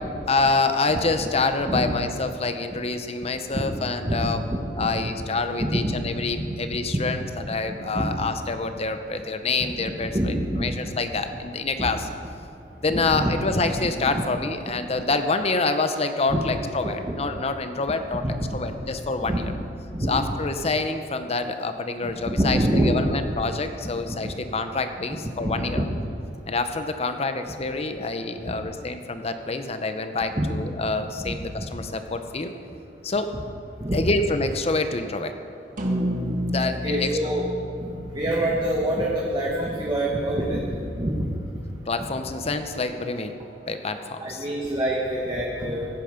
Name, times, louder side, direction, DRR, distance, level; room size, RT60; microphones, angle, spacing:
voice 1, 0.3-4.4 4.8-12.1 12.8-18.2 18.5-19.5 20.1-25.8 26.5-32.5 33.0-33.3 33.9-35.3 36.5-37.4 41.9-43.4 43.7-44.5, left 3 dB, 35° left, 8 dB, 0.8 m, -27 dB
voice 2, 5.6-5.9 6.4-6.6 6.9-7.0 7.9-8.1 9.6-9.7 10.1-10.7 11.8-11.9 12.9-13.3 16.3-16.4 18.2-18.6 19.3-19.6 19.9-20.1 22.0-23.1 24.2-24.3 25.1-25.8 30.4-30.5 31.2-31.3 33.8-34.1 36.8-37.4 38.1-40.6 40.9-41.3 44.2-46.0, right 1 dB, 25° right, -3 dB, 1.4 m, -25 dB
sound 1, 35.8-40.3, equal, 45° right, 1.4 m, -31 dB
16.0 x 9.1 x 5.2 m, 2.6 s
head